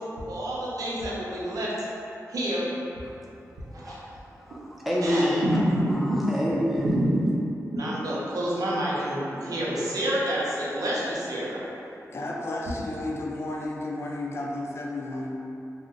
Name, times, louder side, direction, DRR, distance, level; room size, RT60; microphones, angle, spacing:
voice 1, 0.3-1.7 2.3-2.7 3.7-4.0 5.0-6.2 6.8-7.4 7.7-11.6, right 1 dB, 80° right, -7 dB, 0.6 m, -27 dB
voice 2, 3.7-5.6 5.9-7.0, equal, ahead, -6 dB, 0.6 m, -28 dB
voice 3, 12.1-15.4, left 2 dB, 45° left, -2 dB, 0.4 m, -32 dB
2.5 x 2.0 x 3.7 m, 2.7 s
cardioid pair, 60°, 6 cm